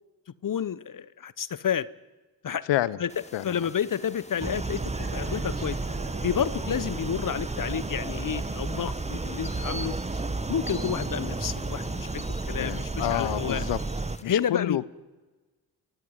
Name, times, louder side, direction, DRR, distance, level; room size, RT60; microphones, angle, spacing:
voice 1, 0.4-1.9 2.4-2.6 3.0-3.1 3.4-5.8 6.2-10.0 10.5-13.6 14.3-14.8, left 8 dB, 50° left, 19 dB, 0.9 m, -30 dB
voice 2, 2.7-3.0 3.3-3.6 12.6-13.8 14.2-14.8, left 14 dB, 80° left, 20 dB, 0.9 m, -28 dB
sound 1, 3.1-14.2, left 1 dB, 15° left, 2.7 m, -46 dB
sound 2, 4.4-14.2, right 3 dB, 15° right, 1.1 m, -32 dB
sound 3, 4.9-12.2, right 4 dB, 50° right, 4.9 m, -46 dB
22.5 x 16.5 x 9.6 m, 1.2 s
supercardioid pair, 50°, 43 cm